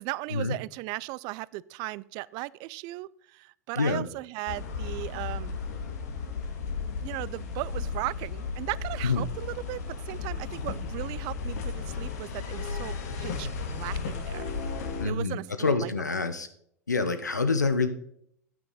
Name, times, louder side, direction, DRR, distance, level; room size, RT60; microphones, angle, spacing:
voice 1, 0.0-5.5 7.0-14.4 15.0-15.9, right 21 dB, 50° right, 22 dB, 0.4 m, -37 dB
voice 2, 3.8-4.1 9.0-9.2 15.0-16.5 16.9-17.9, left 4 dB, 90° left, 10 dB, 0.8 m, -26 dB
sound 1, 4.5-15.1, left 5 dB, 65° left, 1.7 m, -34 dB
9.2 x 9.1 x 3.9 m, 0.68 s
figure-of-eight pair, 80°, 9 cm